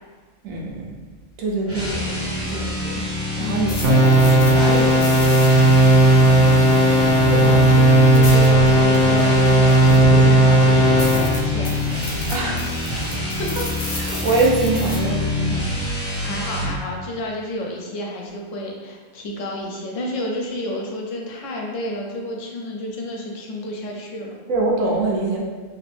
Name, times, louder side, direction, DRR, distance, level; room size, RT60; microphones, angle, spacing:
voice 1, 0.4-0.9 1.4-3.1 3.4-5.1 5.4-5.9 12.3-12.7 14.0-15.7 24.5-25.4, right 2 dB, 80° right, -2 dB, 1.1 m, -24 dB
sound 1, 1.6-16.8, left 2 dB, 15° right, 0.4 m, -26 dB
voice 2, 3.4-3.7 7.3-11.9 13.4-13.5 14.9-15.0 15.9-24.3, left 1 dB, 75° left, 0 dB, 1.0 m, -30 dB
sound 2, 3.4-10.2 10.6-10.7 11.0-15.0, left 2 dB, 55° left, 0.5 m, -35 dB
sound 3, 3.8-11.4, right 2 dB, 55° right, 0.7 m, -14 dB
3.0 x 2.5 x 3.3 m, 1.5 s
omnidirectional pair, 1.4 m